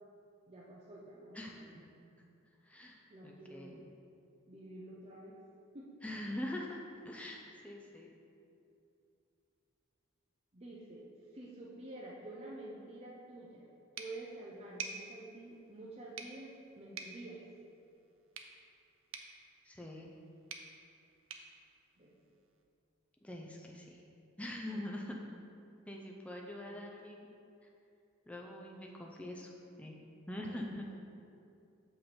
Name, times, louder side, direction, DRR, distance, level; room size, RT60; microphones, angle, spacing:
voice 1, 0.5-1.8 3.1-3.8 4.5-5.4 5.7-5.9 10.5-11.0 11.3-13.7 14.0-17.4 22.0-22.1 24.7-24.8 30.4-30.7, right 2 dB, 30° right, -5 dB, 0.7 m, -49 dB
voice 2, 1.3-1.9 2.6-3.8 6.0-8.1 19.6-20.1 23.2-24.0 24.4-25.2 25.9-27.3 28.3-29.5 29.8-30.0 30.3-30.8, left 1 dB, 5° left, -1 dB, 0.5 m, -44 dB
sound 1, 14.0-22.6, right 5 dB, 85° right, 0.6 m, -51 dB
6.9 x 5.4 x 4.4 m, 2.6 s
head